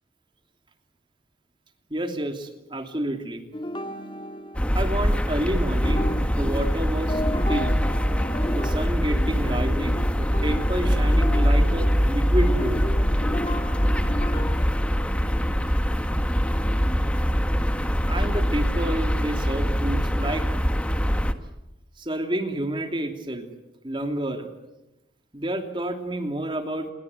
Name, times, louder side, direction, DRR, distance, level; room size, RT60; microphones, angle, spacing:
voice 1, 1.9-3.4 4.7-7.2 7.5-7.8 8.5-12.9 18.1-20.5 22.0-23.4 23.8-24.5 25.3-26.9, right 1 dB, 25° right, 6 dB, 2.9 m, -29 dB
sound 1, 3.5-5.3 5.7-14.7, left 1 dB, 25° left, 1.9 m, -34 dB
sound 2, 4.5-21.3, equal, 5° left, 1.4 m, -23 dB
28.5 x 22.0 x 8.0 m, 0.94 s
head